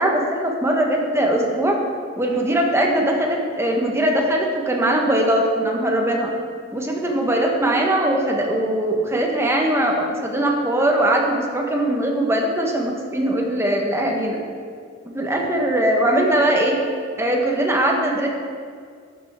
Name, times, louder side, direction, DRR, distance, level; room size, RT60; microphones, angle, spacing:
voice 1, 0.0-1.8 2.2-6.3 6.7-14.4 15.1-16.8 17.2-18.3, right 1 dB, 15° right, 0 dB, 1.3 m, -20 dB
13.0 x 8.8 x 3.7 m, 2.1 s
head